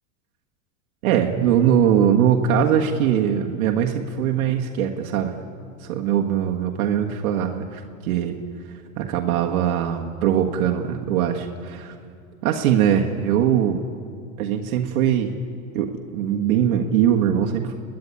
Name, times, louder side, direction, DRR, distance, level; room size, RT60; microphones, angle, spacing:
voice 1, 1.0-5.4 5.8-8.3 9.0-11.9 12.4-13.9 14.4-15.3 15.7-17.7, right 9 dB, 75° right, 1 dB, 1.7 m, -21 dB
30.0 x 10.5 x 10.0 m, 2.3 s
supercardioid pair, 140°, 42 cm